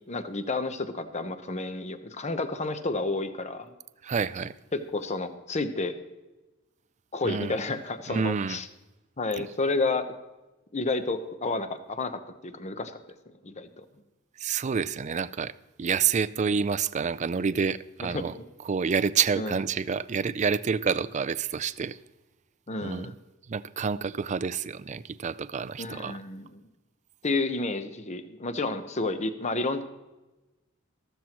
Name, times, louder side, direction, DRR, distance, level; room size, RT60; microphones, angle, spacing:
voice 1, 0.1-3.7 4.7-6.0 7.1-8.7 9.2-10.1 10.7-13.0 13.4-13.8 18.0-18.2 19.4-19.6 22.7-23.2 25.8-26.6 27.2-29.8, left 3 dB, 35° left, 0.9 m, -30 dB
voice 2, 4.0-4.5 7.2-7.6 8.1-8.6 9.4-9.5 14.4-15.5 15.8-18.3 18.7-22.0 22.8-23.1 23.5-26.2, right 6 dB, 35° right, 0.4 m, -28 dB
14.0 x 13.5 x 3.0 m
head